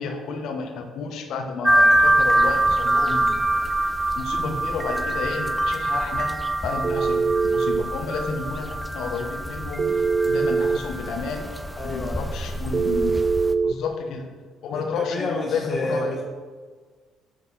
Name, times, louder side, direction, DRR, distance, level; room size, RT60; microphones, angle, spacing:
voice 1, 0.0-3.7 4.2-6.4 6.6-11.4 11.8-13.2 13.6-14.3 14.6-16.2, left 4 dB, 65° left, 3 dB, 1.0 m, -31 dB
sound 1, 1.6-13.5, right 1 dB, 5° right, 0.7 m, -24 dB
Telephone, 6.8-7.9 9.8-10.8 12.7-13.8, right 4 dB, 40° right, 0.3 m, -22 dB
voice 2, 11.8-12.3 14.7-16.2, left 2 dB, 40° left, -4 dB, 1.5 m, -29 dB
9.9 x 4.0 x 6.3 m, 1.5 s
hypercardioid pair, 50°, 0 cm